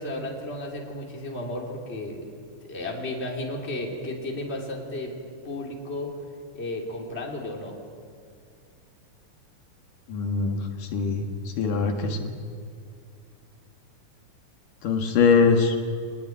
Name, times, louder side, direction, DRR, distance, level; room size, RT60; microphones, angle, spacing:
voice 1, 0.0-2.3 2.7-5.1 5.4-6.1 6.5-7.7, left 1 dB, 20° left, 0 dB, 3.4 m, -33 dB
voice 2, 10.1-10.6 10.9-11.3 11.6-12.2 14.8-15.7, left 5 dB, 80° left, 4 dB, 3.4 m, -21 dB
26.0 x 20.0 x 9.4 m, 2.3 s
omnidirectional pair, 3.8 m